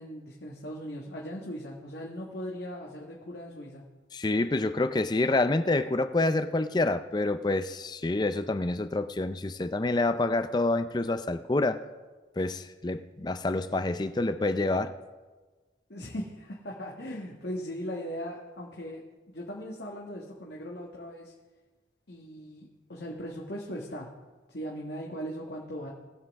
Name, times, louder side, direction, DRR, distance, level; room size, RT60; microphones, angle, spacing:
voice 1, 0.0-3.8 15.9-21.3 22.1-24.1 24.5-25.9, equal, 70° left, -3 dB, 1.5 m, -39 dB
voice 2, 4.1-11.8 12.4-14.9, left 2 dB, 25° left, 11 dB, 0.4 m, -27 dB
20.5 x 7.5 x 3.6 m, 1.3 s
head